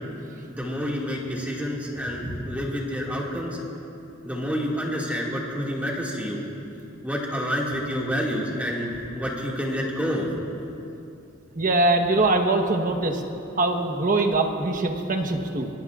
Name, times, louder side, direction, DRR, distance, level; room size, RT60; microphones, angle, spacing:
voice 1, 0.5-3.6 4.2-6.4 7.0-10.3, equal, 10° right, -4 dB, 2.1 m, -28 dB
voice 2, 11.5-13.2 13.6-15.7, right 2 dB, 40° right, 4 dB, 1.1 m, -22 dB
24.5 x 21.0 x 2.5 m, 2.8 s
head